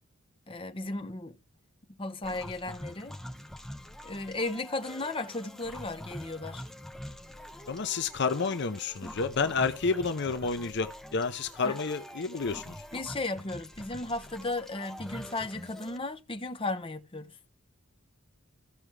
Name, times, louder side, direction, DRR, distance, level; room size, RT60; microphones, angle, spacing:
voice 1, 0.5-1.4 2.0-3.2 4.0-6.6 11.6-11.8 12.9-17.3, left 2 dB, 25° left, 1.0 m, -35 dB
sound 1, 2.2-16.0, equal, ahead, 0.8 m, -45 dB
voice 2, 7.7-12.7, left 4 dB, 55° left, 0.7 m, -30 dB
15.5 x 6.1 x 3.3 m
head